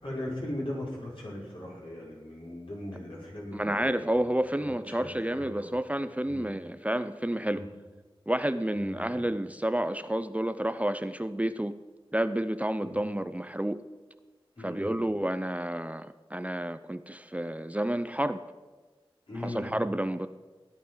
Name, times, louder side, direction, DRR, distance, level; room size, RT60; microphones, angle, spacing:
voice 1, 0.0-4.2 4.6-5.7 6.2-6.5 7.4-7.7 8.7-9.2 12.8-13.0 14.6-14.9 19.3-19.7, left 1 dB, 60° left, 5.5 m, -39 dB
voice 2, 3.5-7.7 8.3-11.8 12.1-13.8 14.6-18.4 19.4-20.3, right 1 dB, 15° right, 0.5 m, -30 dB
16.0 x 11.0 x 5.6 m
wide cardioid pair, 60°, 10 cm